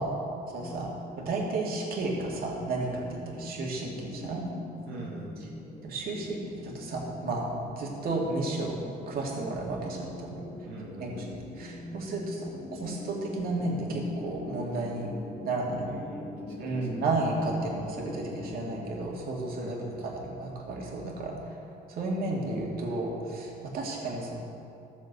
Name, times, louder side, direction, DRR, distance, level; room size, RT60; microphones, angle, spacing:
voice 1, 0.0-0.4 4.9-5.5 10.6-11.3 15.9-17.0 19.6-20.0, right 3 dB, 85° right, -5 dB, 2.1 m, -44 dB
voice 2, 0.5-4.4 5.8-6.4 6.6-7.5 7.8-8.8 9.1-10.4 11.0-11.1 11.6-15.1 15.4-15.9 16.6-19.8 20.0-21.4 21.9-24.4, right 2 dB, 60° right, -2 dB, 2.6 m, -32 dB
sound 1, 0.6-18.9, left 2 dB, 40° left, 1.7 m, -43 dB
14.0 x 7.2 x 6.8 m, 2.7 s
cardioid pair, 110°, 17 cm